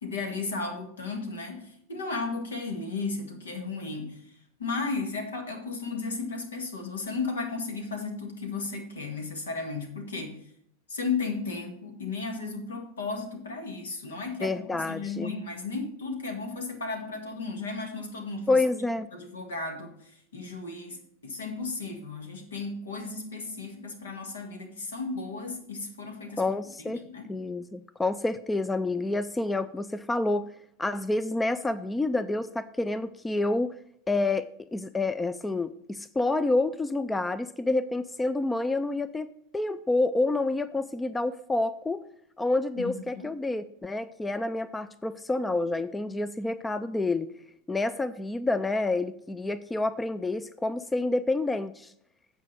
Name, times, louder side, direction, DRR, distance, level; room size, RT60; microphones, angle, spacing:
voice 1, 0.0-10.5 10.9-18.6 19.1-26.4 26.9-27.3 42.8-43.3, left 4 dB, 75° left, 4 dB, 1.8 m, -34 dB
voice 2, 14.4-15.3 18.5-19.1 26.4-27.0 27.3-30.5 30.8-33.8 34.1-39.3 39.5-42.0 42.4-47.3 47.7-51.9, left 2 dB, 10° left, 14 dB, 0.4 m, -28 dB
8.3 x 5.0 x 6.7 m, 0.69 s
figure-of-eight pair, 90°, 0 cm